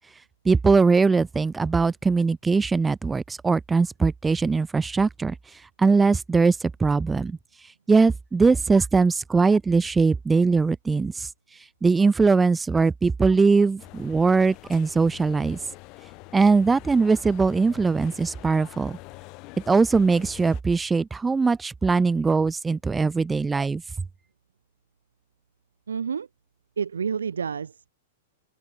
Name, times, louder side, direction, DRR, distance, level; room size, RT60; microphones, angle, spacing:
voice 1, 0.4-5.3 5.8-7.4 7.9-11.3 11.8-15.6 16.3-19.0 19.7-23.8, right 4 dB, 15° right, 0.7 m, -21 dB
sound 1, 13.8-20.6, left 26 dB, 45° left, 4.3 m, -45 dB
voice 2, 25.9-26.3 26.8-27.9, right 6 dB, 85° right, 2.8 m, -29 dB
open air
hypercardioid pair, 110°, 0 cm